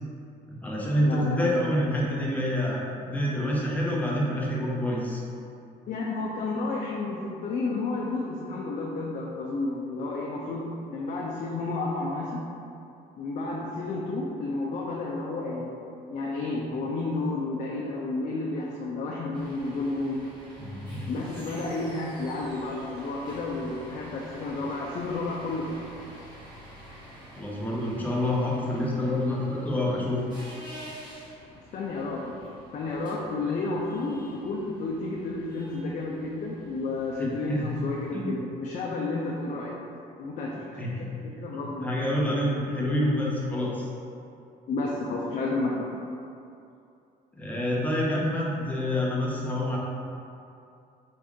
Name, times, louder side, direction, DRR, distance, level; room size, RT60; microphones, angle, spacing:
voice 1, 0.5-5.2 20.6-21.1 21.4-21.5 27.3-30.2 37.2-37.7 38.1-38.3 40.7-41.1 41.4-43.9 47.4-49.8, left 1 dB, 10° left, -5 dB, 0.8 m, -27 dB
voice 2, 1.0-1.8 5.9-12.4 13.2-15.7 16.1-20.2 21.1-25.8 31.7-32.3 32.7-39.7 40.2-42.0 44.7-45.9, left 3 dB, 50° left, -3 dB, 0.5 m, -31 dB
sound 1, 19.3-38.1, right 1 dB, 25° right, 1.4 m, -48 dB
4.6 x 2.5 x 3.6 m, 2.6 s
cardioid pair, 110°, 17 cm